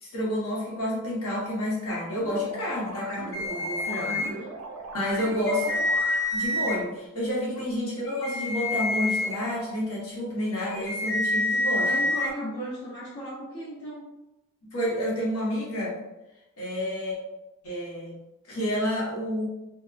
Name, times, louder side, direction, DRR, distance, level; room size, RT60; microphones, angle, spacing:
voice 1, 0.0-4.2 4.9-5.8 6.3-11.9 14.6-16.0 16.6-17.2 17.6-18.2 18.5-19.5, left 1 dB, 85° left, -6 dB, 1.0 m, -29 dB
sound 1, 2.2-6.6, right 3 dB, 65° right, 0.3 m, -40 dB
sound 2, 3.3-4.3 5.1-6.7 8.0-9.3 10.7-12.3, left 2 dB, 15° left, 0.4 m, -27 dB
voice 2, 4.0-4.5 5.7-5.8 11.8-14.0, equal, 70° left, -9 dB, 0.7 m, -36 dB
2.8 x 2.0 x 2.4 m, 0.94 s
head